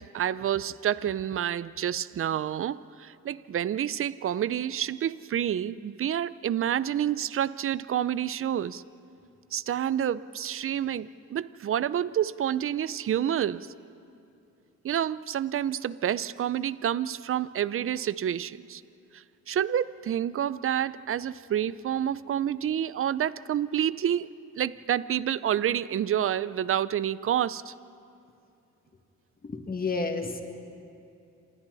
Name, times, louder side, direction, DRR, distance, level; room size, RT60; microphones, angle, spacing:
voice 1, 0.0-8.8 9.5-13.7 14.8-18.8 19.1-24.3 24.6-27.7, right 10 dB, 45° right, 18 dB, 0.6 m, -28 dB
voice 2, 29.4-30.4, left 4 dB, 30° left, 5 dB, 2.1 m, -30 dB
27.5 x 27.0 x 4.1 m, 2.6 s
cardioid pair, 90°, 30 cm